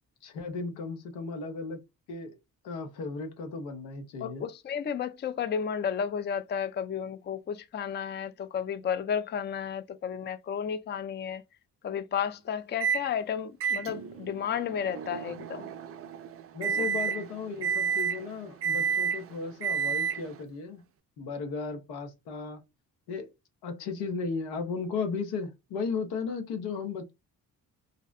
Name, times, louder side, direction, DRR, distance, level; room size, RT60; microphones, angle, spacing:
voice 1, 0.2-1.8 2.1-2.4 2.6-4.5 16.5-20.8 21.2-22.6 23.1-23.3 23.6-27.1, left 4 dB, 85° left, 0.8 m, -35 dB
voice 2, 4.2-11.4 11.8-15.7 16.6-16.9, left 7 dB, 30° left, 0.4 m, -32 dB
Microwave oven, 12.8-13.1 13.6-20.4, right 7 dB, 40° right, 0.4 m, -31 dB
2.7 x 2.0 x 2.4 m
supercardioid pair, 50°, 37 cm